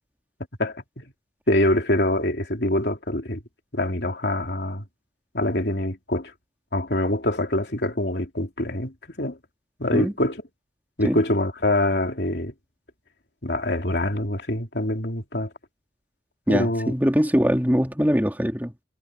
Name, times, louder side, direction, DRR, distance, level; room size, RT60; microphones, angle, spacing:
voice 1, 0.6-1.0 1.5-3.4 3.7-4.8 5.3-6.3 6.7-9.4 9.8-10.4 11.0-12.5 13.4-15.5 16.5-16.9, left 1 dB, 65° left, 3.2 m, -24 dB
voice 2, 16.5-18.7, equal, 10° right, 3.2 m, -22 dB
head